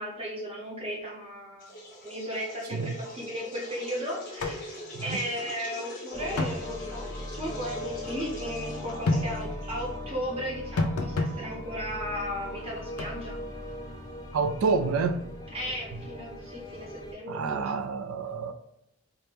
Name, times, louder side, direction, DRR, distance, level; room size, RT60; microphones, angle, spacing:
voice 1, 0.0-1.7 2.0-7.0 7.3-13.4 15.5-17.8, equal, 25° right, 0.7 m, -35 dB
sound 1, 1.6-10.1, equal, 35° left, 1.2 m, -42 dB
sound 2, 4.4-4.6 4.9-5.0 6.4-6.6 9.1-9.3 10.8-11.3 13.0-13.1, left 2 dB, 85° left, 0.6 m, -27 dB
sound 3, 6.1-17.1, left 1 dB, 15° left, 0.4 m, -40 dB
voice 2, 14.3-15.2 17.3-18.5, right 4 dB, 70° right, 0.4 m, -28 dB
4.4 x 2.2 x 3.3 m
head